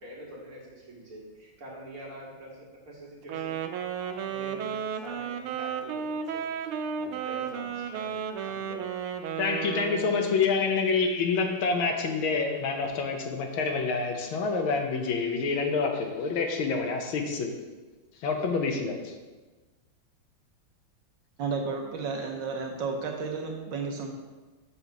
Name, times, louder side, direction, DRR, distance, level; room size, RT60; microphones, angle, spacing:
voice 1, 0.0-3.6 3.9-9.3, right 1 dB, 45° right, -5 dB, 2.2 m, -46 dB
Wind instrument woodwind instrument, 3.2-10.4, right 7 dB, 90° right, 1.5 m, -33 dB
voice 2, 9.4-17.5 18.2-19.1, left 4 dB, 80° left, 3 dB, 1.7 m, -27 dB
voice 3, 21.4-24.1, right 4 dB, 70° right, 2 dB, 1.3 m, -32 dB
7.0 x 4.2 x 5.9 m, 1.3 s
omnidirectional pair, 2.3 m